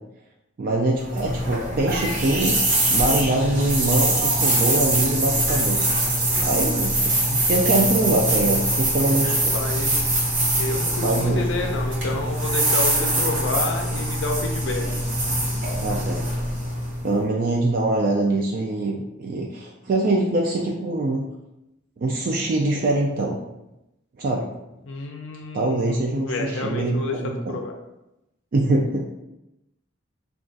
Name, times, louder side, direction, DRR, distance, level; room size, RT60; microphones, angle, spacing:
voice 1, 0.6-2.6 2.9-9.5 11.0-11.4 15.8-16.3 17.0-21.3 22.0-23.4 24.2-24.5 25.5-27.6 28.5-29.2, right 2 dB, 45° right, -1 dB, 0.3 m, -24 dB
sound 1, 1.0-17.1, right 1 dB, 65° right, 1.0 m, -23 dB
voice 2, 9.3-10.1 10.5-14.9 24.8-27.2 27.5-27.7, left 3 dB, 70° left, 3 dB, 0.5 m, -30 dB
2.4 x 2.3 x 3.8 m, 0.91 s
head